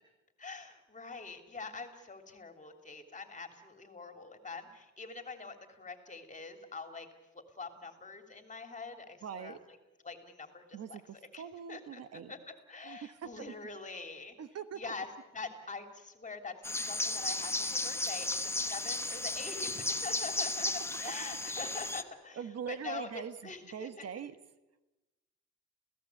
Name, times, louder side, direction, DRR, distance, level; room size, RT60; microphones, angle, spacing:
voice 1, 0.4-7.1 7.3-9.8 10.0-11.0 11.3-11.4 11.7-14.4 14.7-15.1 15.3-20.7 21.0-24.1, left 4 dB, 25° left, 6 dB, 3.1 m, -44 dB
voice 2, 9.2-9.6 10.7-12.3 12.8-13.5 14.4-14.8 22.3-24.4, right 8 dB, 55° right, 11 dB, 1.2 m, -42 dB
sound 1, 16.6-22.0, left 2 dB, 10° left, 1.2 m, -34 dB
28.5 x 17.0 x 8.4 m, 1.1 s
cardioid pair, 125°, 29 cm